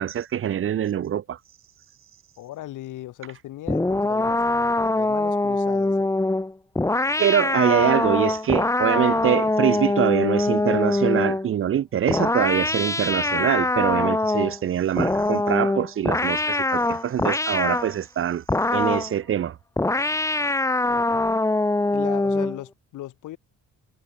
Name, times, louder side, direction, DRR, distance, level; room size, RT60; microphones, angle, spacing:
voice 1, 0.0-1.4 7.2-18.4 18.7-19.6, right 10 dB, 45° right, 0.6 m, -24 dB
voice 2, 2.4-4.4 4.8-6.1 20.8-21.0 21.9-23.4, left 15 dB, 85° left, 5.2 m, -37 dB
sound 1, 3.7-11.5 12.1-14.6 15.0-17.9 18.5-19.1 19.8-22.6, left 2 dB, 10° left, 1.0 m, -23 dB
cardioid pair, 90°, 30 cm